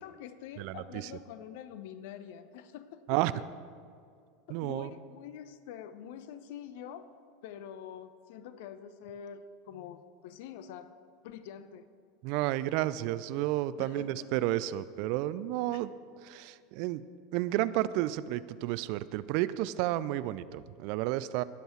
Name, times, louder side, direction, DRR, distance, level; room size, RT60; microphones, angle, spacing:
voice 1, 0.0-3.4 4.5-7.1 7.4-10.9 11.2-11.9 13.8-14.3 15.7-15.8, left 9 dB, 60° left, 12 dB, 0.8 m, -46 dB
voice 2, 0.6-1.1 3.1-3.3 4.5-4.9 12.2-15.9 16.2-17.0 17.3-21.4, right 15 dB, 55° right, 16 dB, 0.4 m, -31 dB
20.0 x 8.0 x 4.5 m, 2.3 s
figure-of-eight pair, 80°, 0 cm